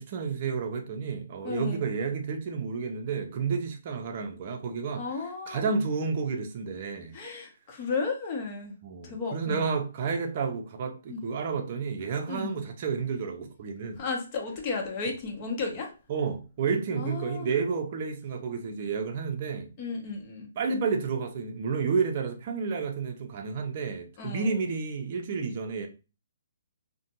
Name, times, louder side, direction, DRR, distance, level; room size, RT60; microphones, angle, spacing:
voice 1, 0.0-5.0 5.5-7.1 8.8-14.0 16.1-19.7 20.6-25.9, right 5 dB, 40° right, 0.5 m, -31 dB
voice 2, 1.4-1.8 5.0-5.7 7.1-8.7 9.0-9.6 11.1-11.2 12.3-12.5 14.0-15.9 16.9-17.5 19.8-20.5 24.2-24.7, left 4 dB, 35° left, 0.8 m, -33 dB
2.5 x 2.2 x 2.8 m
hypercardioid pair, 150°, 0 cm